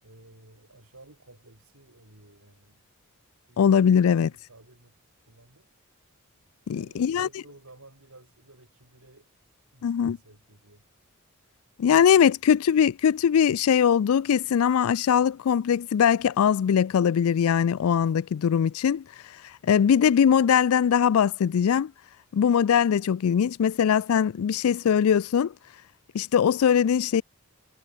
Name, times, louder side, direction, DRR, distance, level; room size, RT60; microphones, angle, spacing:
voice 1, 0.0-2.8 4.2-5.0 5.3-5.7 6.7-9.3 9.7-10.8, right 2 dB, 80° right, 6.4 m, -53 dB
voice 2, 3.6-4.3 6.7-7.3 9.8-10.2 11.8-19.0 19.6-21.9 22.3-25.5 26.1-27.2, left 8 dB, 80° left, 0.4 m, -21 dB
head